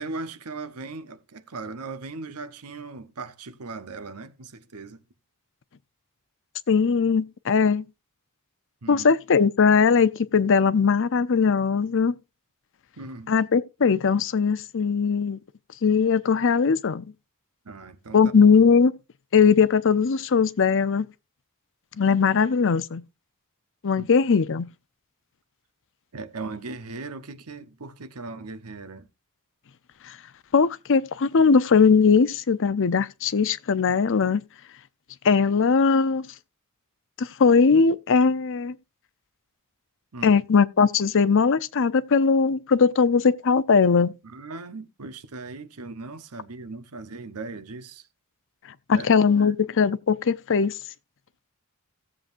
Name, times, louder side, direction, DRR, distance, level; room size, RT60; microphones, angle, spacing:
voice 1, 0.0-5.0 8.8-9.1 13.0-13.3 17.6-18.3 24.0-24.1 26.1-29.1 40.1-40.4 44.2-48.1 48.9-49.1 49.4-49.5, right 3 dB, 85° right, 1.0 m, -38 dB
voice 2, 6.7-7.9 8.9-12.1 13.3-15.4 15.8-17.0 18.1-18.9 19.3-21.1 22.0-23.0 23.8-24.7 30.1-30.2 30.5-34.4 35.2-36.2 37.2-38.7 40.2-44.1 48.9-50.8, left 5 dB, 60° left, 0.6 m, -20 dB
16.5 x 7.6 x 2.6 m
head